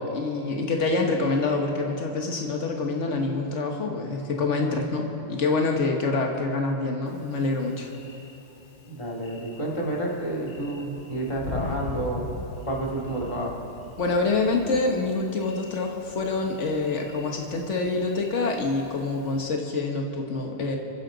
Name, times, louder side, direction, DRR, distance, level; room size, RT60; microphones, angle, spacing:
voice 1, 0.0-7.9 14.0-20.8, left 3 dB, 85° left, 2 dB, 1.5 m, -26 dB
Thunder, 7.1-19.4, left 4 dB, 50° left, 1.0 m, -42 dB
voice 2, 8.8-12.3 12.6-13.6, right 1 dB, 25° left, -3 dB, 2.3 m, -30 dB
28.0 x 10.0 x 3.9 m, 2.9 s
omnidirectional pair, 1.2 m